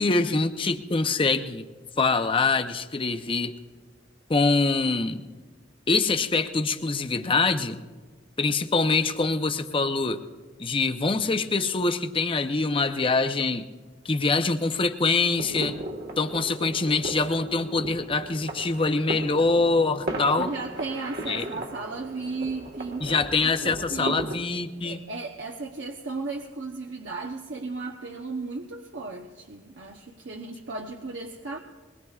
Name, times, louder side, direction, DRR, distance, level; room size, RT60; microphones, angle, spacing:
voice 1, 0.0-1.7 2.0-3.5 4.3-5.2 5.9-7.8 8.4-10.2 10.6-13.6 14.0-15.7 16.2-20.5 21.3-21.5 23.0-25.0, left 3 dB, 30° left, 8 dB, 0.7 m, -24 dB
sound 1, 15.2-24.4, right 2 dB, 55° right, 1.5 m, -36 dB
voice 2, 20.4-24.2 24.8-31.6, right 3 dB, 80° right, 1 dB, 0.9 m, -35 dB
22.0 x 20.0 x 2.4 m, 1.4 s
head